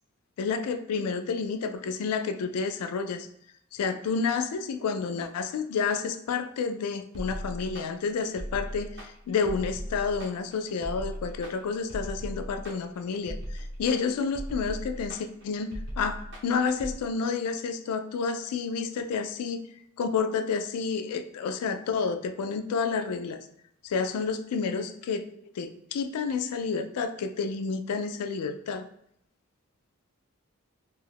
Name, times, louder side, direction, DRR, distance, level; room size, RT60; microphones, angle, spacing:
voice 1, 0.4-3.3 3.7-19.6 20.0-23.5 23.8-25.2 25.6-28.9, left 5 dB, 90° left, 9 dB, 0.3 m, -30 dB
sound 1, 7.1-17.0, equal, 50° right, 0.6 m, -38 dB
2.6 x 2.3 x 3.4 m, 0.72 s
head